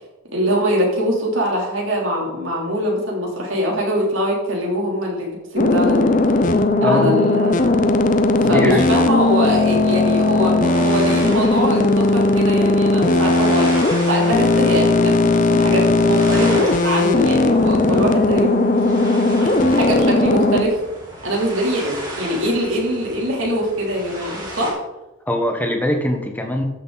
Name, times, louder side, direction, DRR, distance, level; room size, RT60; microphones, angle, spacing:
voice 1, 0.3-7.8 8.4-18.6 19.4-20.8 21.2-24.8, equal, 70° right, -2 dB, 3.3 m, -22 dB
sound 1, 5.6-20.6, left 2 dB, 35° left, 0.7 m, -17 dB
voice 2, 8.5-9.0 25.3-26.6, left 1 dB, 10° left, 3 dB, 1.3 m, -21 dB
sound 2, 10.7-24.7, right 1 dB, 20° right, 2.5 m, -34 dB
13.5 x 6.6 x 4.1 m, 0.99 s
head